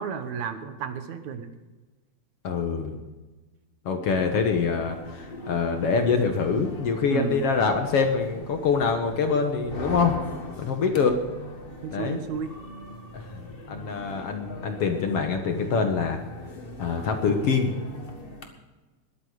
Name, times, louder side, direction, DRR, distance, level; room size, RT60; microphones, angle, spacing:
voice 1, 0.0-1.5 7.1-7.4 11.8-12.5, right 6 dB, 70° right, 9 dB, 2.3 m, -32 dB
voice 2, 2.4-3.0 3.9-10.1 10.6-11.2 11.9-12.2 13.1-13.4 13.7-16.2 16.8-17.7, left 5 dB, 60° left, 5 dB, 1.8 m, -25 dB
sound 1, 4.1-18.4, left 1 dB, 45° left, 0.7 m, -40 dB
21.0 x 8.9 x 4.8 m, 1.2 s
omnidirectional pair, 3.6 m